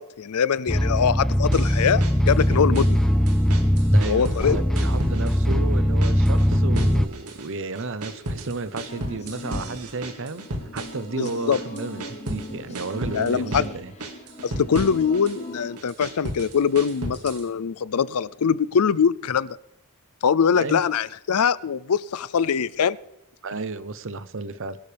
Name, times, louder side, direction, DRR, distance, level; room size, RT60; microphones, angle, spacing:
voice 1, 0.0-3.0 4.1-4.6 11.2-11.6 13.1-13.7 14.4-19.6 20.2-23.0, left 7 dB, 85° left, 19 dB, 0.5 m, -23 dB
sound 1, 0.7-7.1, equal, ahead, 0.5 m, -20 dB
sound 2, 1.5-3.0 3.3-4.5 4.8-5.7 6.0-7.5 7.8-12.5 12.7-13.7 14.0-15.4 15.8-17.5, right 1 dB, 85° right, 2.1 m, -33 dB
voice 2, 3.9-10.5 10.7-13.9 20.5-20.8 23.4-24.8, right 3 dB, 60° right, 13 dB, 0.9 m, -32 dB
sound 3, 8.9-15.8, left 2 dB, 30° left, 0.9 m, -39 dB
22.5 x 12.0 x 3.4 m, 0.80 s
head